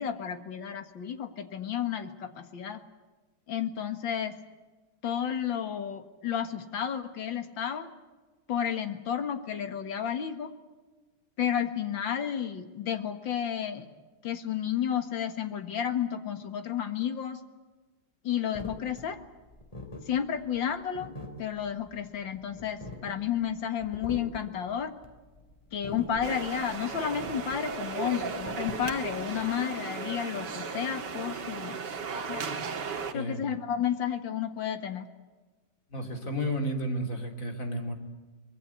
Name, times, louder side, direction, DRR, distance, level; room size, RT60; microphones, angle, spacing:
voice 1, 0.0-2.8 3.5-4.3 5.0-7.9 8.5-10.5 11.4-13.9 14.2-17.4 18.2-19.2 20.1-21.1 21.4-24.9 25.7-31.8 32.1-32.4 33.1-35.1, left 9 dB, 75° left, 8 dB, 2.4 m, -32 dB
sound 1, 18.5-29.5, left 2 dB, 15° left, 2.8 m, -44 dB
sound 2, 26.2-33.1, right 5 dB, 65° right, 2.3 m, -36 dB
voice 2, 35.9-37.9, equal, 45° left, 4 dB, 3.5 m, -32 dB
24.0 x 21.5 x 8.3 m, 1.3 s
omnidirectional pair, 2.1 m